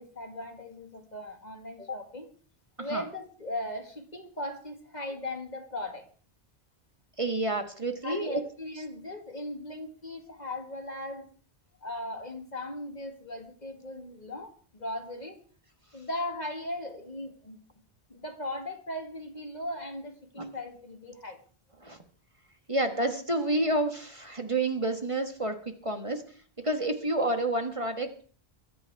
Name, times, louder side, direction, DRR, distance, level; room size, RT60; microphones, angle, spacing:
voice 1, 0.0-2.3 2.8-6.0 8.0-11.3 11.8-15.4 15.9-17.6 18.1-21.4, left 1 dB, 45° left, 5 dB, 2.0 m, -38 dB
voice 2, 7.2-8.4 20.4-20.5 21.8-22.0 22.7-26.2 26.6-28.2, right 2 dB, 30° right, 6 dB, 1.5 m, -29 dB
23.0 x 8.6 x 4.7 m, 0.44 s
omnidirectional pair, 1.0 m